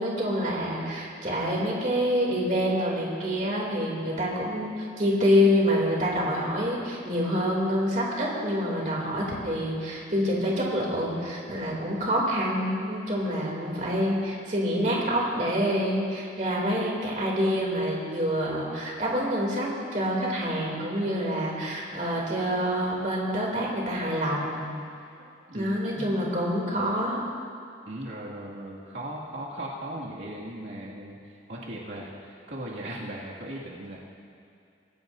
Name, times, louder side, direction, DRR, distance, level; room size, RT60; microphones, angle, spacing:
voice 1, 0.0-24.6 25.5-27.2, equal, 45° right, -3 dB, 2.9 m, -27 dB
voice 2, 25.2-25.7 27.9-34.0, right 1 dB, 80° right, -6 dB, 2.3 m, -38 dB
25.0 x 16.0 x 2.7 m, 2.5 s
head